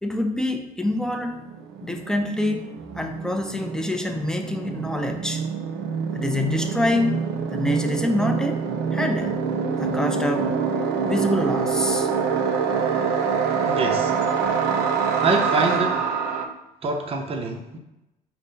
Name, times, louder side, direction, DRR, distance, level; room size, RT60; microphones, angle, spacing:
voice 1, 0.0-1.4 1.8-5.4 6.1-7.2 7.5-8.6 8.9-9.4 9.8-10.5 11.0-12.1, left 1 dB, 5° left, 5 dB, 0.4 m, -26 dB
sound 1, 0.9-1.0 1.2-16.5, right 6 dB, 85° right, 0.5 m, -25 dB
voice 2, 13.6-14.1 15.2-16.0 16.8-17.8, right 3 dB, 35° right, 3 dB, 0.7 m, -25 dB
5.5 x 2.1 x 3.9 m, 0.93 s
cardioid pair, 110°, 17 cm